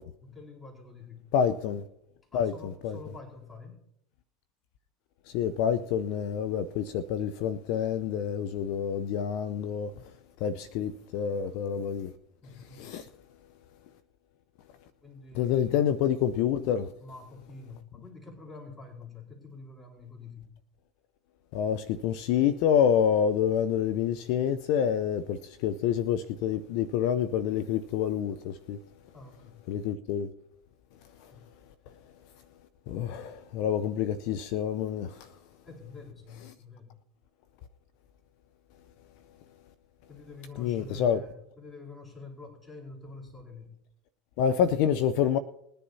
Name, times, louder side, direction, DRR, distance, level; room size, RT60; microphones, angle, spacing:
voice 1, 0.2-1.3 2.3-3.8 12.4-13.0 15.0-15.8 17.0-20.5 29.1-29.9 31.3-31.5 35.6-37.0 40.1-43.8, left 3 dB, 15° left, 4.5 m, -47 dB
voice 2, 1.3-1.8 2.3-2.5 2.8-3.0 5.3-9.9 10.4-12.1 12.7-13.1 15.3-16.9 21.5-28.8 29.7-30.3 32.9-35.3 40.6-41.2 44.4-45.4, left 8 dB, 60° left, 0.7 m, -27 dB
21.5 x 10.5 x 2.8 m
hypercardioid pair, 80°, 0 cm